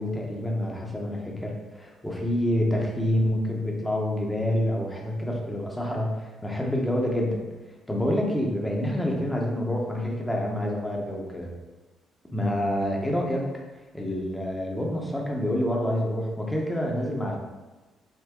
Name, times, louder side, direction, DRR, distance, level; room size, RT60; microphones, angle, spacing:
voice 1, 0.0-7.4 7.9-11.5 12.3-13.5 13.9-17.4, left 1 dB, 5° left, -1 dB, 0.9 m, -27 dB
6.5 x 2.2 x 3.6 m, 1.2 s
cardioid pair, 90°, 0 cm